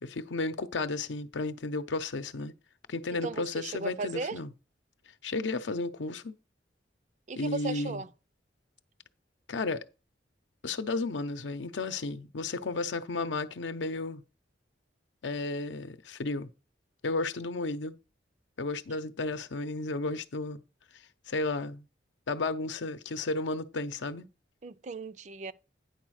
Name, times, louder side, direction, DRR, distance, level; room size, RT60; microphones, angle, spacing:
voice 1, 0.0-2.5 2.9-4.5 5.2-6.4 7.4-8.0 9.5-9.9 10.6-14.2 15.2-16.5 17.0-18.0 18.6-20.6 21.3-21.8 22.3-24.3, left 3 dB, 90° left, 0.7 m, -33 dB
voice 2, 3.1-4.4 7.3-8.1 24.6-25.5, right 4 dB, 40° right, 0.4 m, -36 dB
9.5 x 4.1 x 6.3 m
head